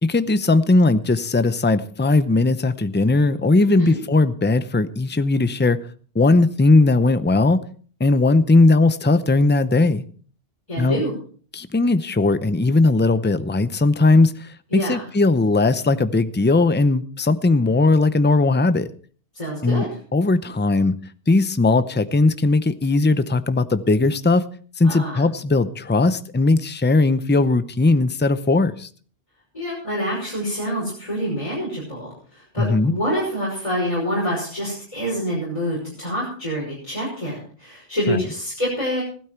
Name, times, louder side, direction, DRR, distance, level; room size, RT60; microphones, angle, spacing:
voice 1, 0.0-5.8 6.1-7.6 8.0-10.0 10.8-11.0 11.5-18.9 19.6-19.8 20.1-21.0 21.3-24.5 24.8-28.9 32.6-32.9 38.1-38.2, left 3 dB, 15° left, 12 dB, 0.6 m, -18 dB
voice 2, 3.7-4.0 10.7-11.1 14.7-15.0 19.3-19.9 24.8-25.2 29.5-39.0, equal, 30° left, -6 dB, 5.8 m, -26 dB
16.0 x 12.5 x 4.5 m, 0.43 s
omnidirectional pair, 1.1 m